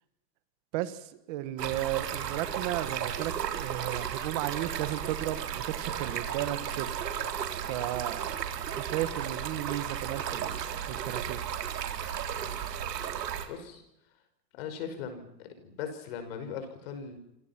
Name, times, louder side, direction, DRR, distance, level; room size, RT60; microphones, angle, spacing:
voice 1, 0.7-6.9 7.6-8.3 8.8-10.6 10.9-11.4, right 14 dB, 25° right, 13 dB, 1.4 m, -34 dB
Stream, 1.6-13.5, right 9 dB, 75° right, 4.1 m, -34 dB
voice 2, 13.5-13.8 14.5-17.2, left 7 dB, 35° left, 8 dB, 5.6 m, -39 dB
28.0 x 25.5 x 6.0 m, 0.83 s
supercardioid pair, 175°, 49 cm